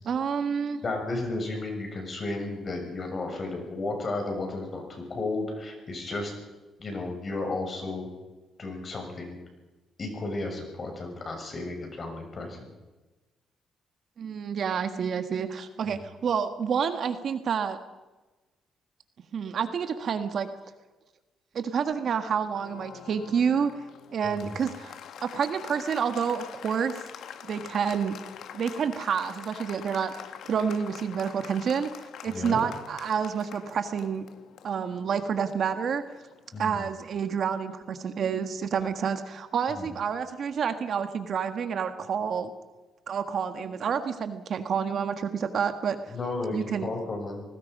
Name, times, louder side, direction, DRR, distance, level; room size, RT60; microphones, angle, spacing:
voice 1, 0.0-0.8 14.2-17.8 19.3-20.5 21.5-23.8 24.1-26.9 27.4-28.2 28.5-30.1 30.5-34.3 34.6-36.0 36.6-42.5 43.1-46.1 46.5-46.9, right 7 dB, 60° right, 8 dB, 1.6 m, -29 dB
voice 2, 0.8-6.3 6.8-8.1 8.6-9.4 10.0-12.7 15.8-16.0 24.2-24.6 32.3-32.7 36.5-36.8 39.8-39.9 46.1-47.4, left 2 dB, 40° left, 3 dB, 6.8 m, -33 dB
Applause, 22.5-36.9, left 9 dB, 75° left, 1.4 m, -46 dB
26.5 x 19.0 x 5.5 m, 1.2 s
cardioid pair, 95°, 0 cm